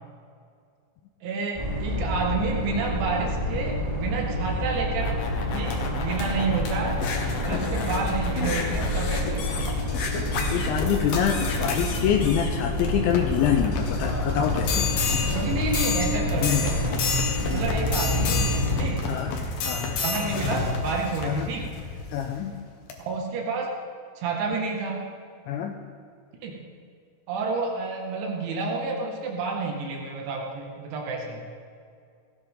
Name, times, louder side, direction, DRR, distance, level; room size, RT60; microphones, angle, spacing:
voice 1, 1.2-5.2 5.4-6.9 7.4-9.5 15.3-17.0 17.5-19.0 20.0-21.8 23.0-23.7 24.2-25.0 26.4-26.5 27.3-31.4, right 4 dB, 75° right, 0 dB, 4.3 m, -29 dB
sound 1, 1.5-18.7, left 1 dB, 35° right, 0.5 m, -28 dB
sound 2, 4.7-22.3 22.9-23.0, left 4 dB, 60° left, 2.5 m, -30 dB
voice 2, 10.5-14.9 16.4-16.7 17.5-17.6 19.1-19.3 19.6-20.0 21.2-21.5 22.1-22.6 25.5-25.8, left 9 dB, 80° left, 4 dB, 2.9 m, -26 dB
17.5 x 16.0 x 3.8 m, 2.3 s
omnidirectional pair, 5.5 m